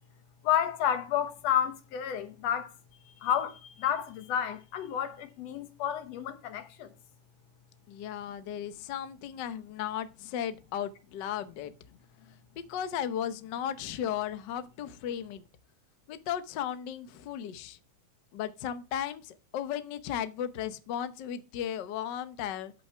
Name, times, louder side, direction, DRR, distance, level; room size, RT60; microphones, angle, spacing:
voice 1, 0.4-2.7 3.2-6.9, left 9 dB, 65° left, 2.1 m, -30 dB
voice 2, 7.9-11.7 12.6-15.4 16.1-17.8 18.3-22.7, left 9 dB, 85° left, 0.9 m, -35 dB
13.0 x 5.7 x 3.4 m
omnidirectional pair, 3.3 m